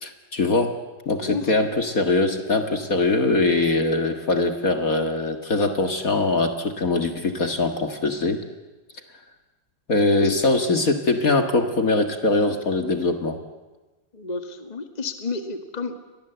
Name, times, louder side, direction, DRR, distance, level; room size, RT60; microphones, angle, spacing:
voice 1, 0.0-0.7 1.1-8.4 9.9-13.4, left 3 dB, 45° left, 6 dB, 2.0 m, -22 dB
voice 2, 14.1-15.9, left 4 dB, 20° left, 7 dB, 1.8 m, -31 dB
29.5 x 23.0 x 8.0 m, 1.2 s
omnidirectional pair, 2.2 m